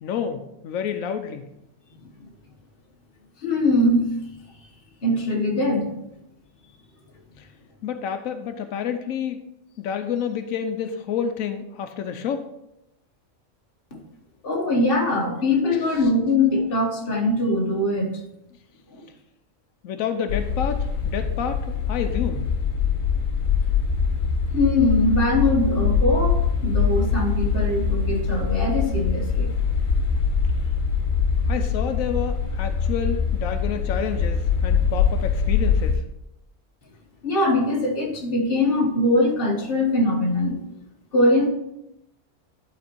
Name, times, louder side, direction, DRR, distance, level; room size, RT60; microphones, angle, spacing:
voice 1, 0.0-1.5 7.4-7.5 7.8-9.4 9.8-12.5 15.7-15.8 19.8-22.5 31.5-36.0, left 7 dB, 90° left, 7 dB, 1.1 m, -29 dB
voice 2, 3.4-4.1 5.0-5.9 13.9-14.0 14.4-18.2 24.5-29.5 37.2-40.6 41.1-41.5, left 1 dB, 45° left, 0 dB, 1.5 m, -22 dB
sound 1, 20.3-35.9, left 6 dB, 75° left, 1.4 m, -23 dB
11.0 x 4.3 x 4.5 m, 0.84 s
omnidirectional pair, 1.4 m